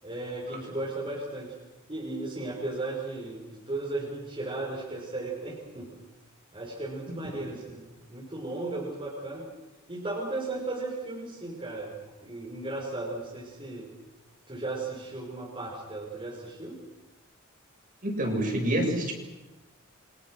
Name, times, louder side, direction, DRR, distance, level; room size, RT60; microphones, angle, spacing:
voice 1, 0.0-1.5 1.9-5.9 6.5-9.4 9.9-12.0 12.2-13.9 14.5-16.8, right 2 dB, 25° right, -4 dB, 5.7 m, -35 dB
voice 2, 18.0-19.1, right 1 dB, 40° right, 1 dB, 7.5 m, -27 dB
29.5 x 26.0 x 6.5 m, 1.1 s
head